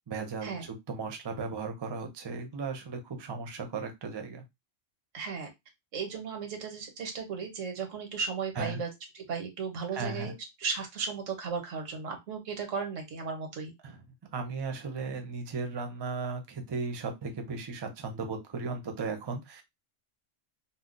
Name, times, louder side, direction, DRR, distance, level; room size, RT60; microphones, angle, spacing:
voice 1, 0.1-0.6 0.9-4.4 8.6-8.8 9.9-10.3 13.8-14.0 14.3-19.6, right 4 dB, 35° right, 5 dB, 0.4 m, -36 dB
voice 2, 5.1-5.5 5.9-8.9 9.1-13.7, right 5 dB, 90° right, 4 dB, 1.3 m, -35 dB
2.7 x 2.0 x 3.7 m, 0.19 s
omnidirectional pair, 1.3 m